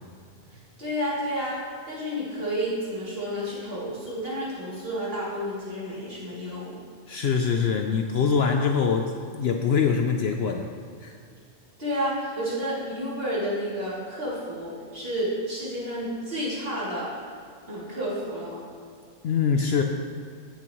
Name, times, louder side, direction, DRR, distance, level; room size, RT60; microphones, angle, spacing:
voice 1, 0.8-6.8 11.8-17.1 17.7-18.6, equal, 45° right, -8 dB, 3.1 m, -30 dB
voice 2, 7.1-10.7 11.0-11.2 19.2-19.8, left 6 dB, 65° left, 4 dB, 0.7 m, -24 dB
16.5 x 6.2 x 3.0 m, 2.2 s
omnidirectional pair, 1.3 m